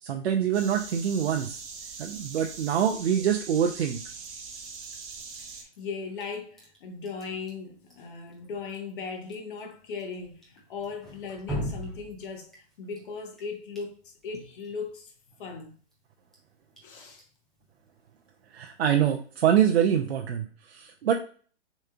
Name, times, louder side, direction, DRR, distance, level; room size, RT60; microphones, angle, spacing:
voice 1, 0.0-1.6 2.0-4.0 18.5-21.1, right 9 dB, 65° right, 0.7 m, -25 dB
sound 1, 0.5-5.6, right 5 dB, 25° right, 0.9 m, -42 dB
Drip, 1.9-20.1, equal, ahead, 0.5 m, -45 dB
voice 2, 5.4-12.5 12.8-15.1 15.4-15.7 16.8-17.2, left 5 dB, 45° left, 1.3 m, -38 dB
6.7 x 3.2 x 2.4 m
hypercardioid pair, 145°, 35 cm